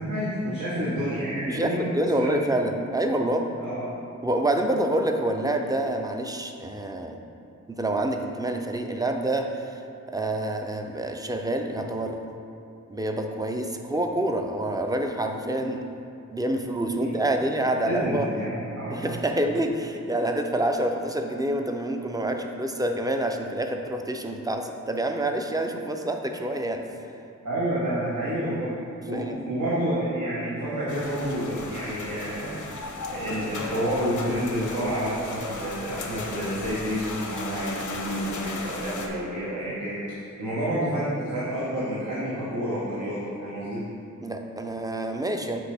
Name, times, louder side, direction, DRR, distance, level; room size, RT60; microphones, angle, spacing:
voice 1, 0.0-2.3 3.6-3.9 17.0-17.4 17.8-19.2 27.4-28.7 29.1-32.7 33.1-43.8, equal, 75° right, -8 dB, 1.2 m, -29 dB
voice 2, 1.5-3.5 4.2-7.2 7.7-9.8 10.1-12.2 12.9-15.9 16.3-18.3 18.9-26.9 29.1-29.5 44.2-45.6, right 1 dB, 15° right, 4 dB, 0.4 m, -27 dB
sound 1, 30.9-39.1, left 3 dB, 90° left, 0.7 m, -36 dB
6.1 x 5.2 x 3.4 m, 2.5 s
wide cardioid pair, 90°, 30 cm